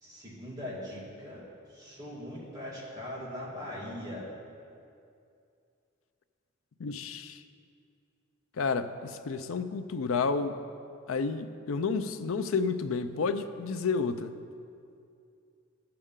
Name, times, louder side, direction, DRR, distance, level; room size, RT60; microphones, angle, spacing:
voice 1, 0.0-1.4 1.7-4.3, left 1 dB, 20° right, -8 dB, 2.5 m, -40 dB
voice 2, 6.8-7.4 8.6-10.6 11.1-14.3, left 4 dB, 90° left, 10 dB, 0.5 m, -30 dB
14.5 x 6.8 x 3.7 m, 2.5 s
head